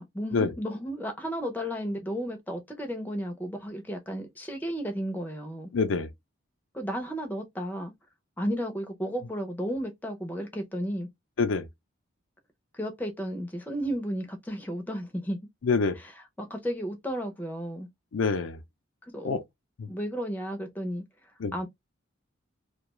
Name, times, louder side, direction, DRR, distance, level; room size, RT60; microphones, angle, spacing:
voice 1, 0.0-5.7 6.7-7.9 8.4-11.1 12.7-15.4 15.9-17.9 19.1-19.4 19.9-21.0 21.5-21.7, equal, 10° left, 0.5 m, -33 dB
voice 2, 5.7-6.1 11.4-11.7 15.6-16.0 18.1-18.6 19.2-19.4 19.8-19.9 21.4-21.5, left 4 dB, 75° left, 0.5 m, -26 dB
2.4 x 2.3 x 2.9 m
head